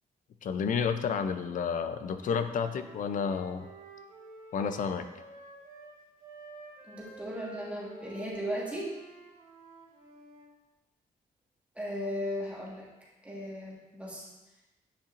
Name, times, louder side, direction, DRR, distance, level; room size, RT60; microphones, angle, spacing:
voice 1, 0.4-3.7 4.5-5.1, left 6 dB, 60° left, 9 dB, 0.5 m, -30 dB
Wind instrument woodwind instrument, 2.0-5.9 6.2-10.5, right 3 dB, 70° right, 2.4 m, -50 dB
voice 2, 6.9-8.9 11.7-12.9 13.2-14.3, equal, 10° right, -6 dB, 1.7 m, -36 dB
10.0 x 5.5 x 2.6 m, 1.0 s
wide cardioid pair, 150°, 15 cm